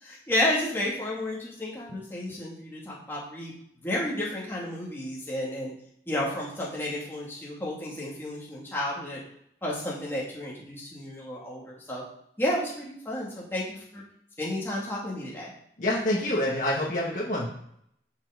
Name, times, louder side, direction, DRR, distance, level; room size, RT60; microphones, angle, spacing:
voice 1, 0.0-3.5 3.8-5.7 6.1-9.2 9.6-12.0 12.4-14.0 14.4-15.5, left 1 dB, 15° left, -5 dB, 2.2 m, -31 dB
voice 2, 15.8-17.5, left 1 dB, 45° left, -4 dB, 1.7 m, -27 dB
11.0 x 5.8 x 5.0 m, 0.71 s
head